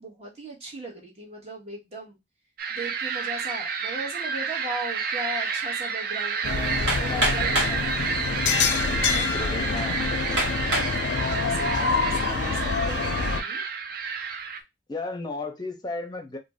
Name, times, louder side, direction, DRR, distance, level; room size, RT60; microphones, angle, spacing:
voice 1, 0.0-2.2 2.7-7.9 9.0-9.7 11.2-13.6, right 1 dB, 35° right, -2 dB, 1.1 m, -38 dB
sound 1, 2.6-14.6, right 6 dB, 55° right, 0.4 m, -30 dB
sound 2, 6.4-13.4, left 5 dB, 75° left, 0.4 m, -26 dB
Hammer, 6.9-7.8 8.7-8.8 9.4-9.5 10.4-11.0 11.6-12.0, right 1 dB, 70° right, 1.1 m, -26 dB
voice 2, 9.3-10.5 14.9-16.4, left 3 dB, 25° left, 4 dB, 0.6 m, -35 dB
2.5 x 2.1 x 3.4 m, 0.21 s
head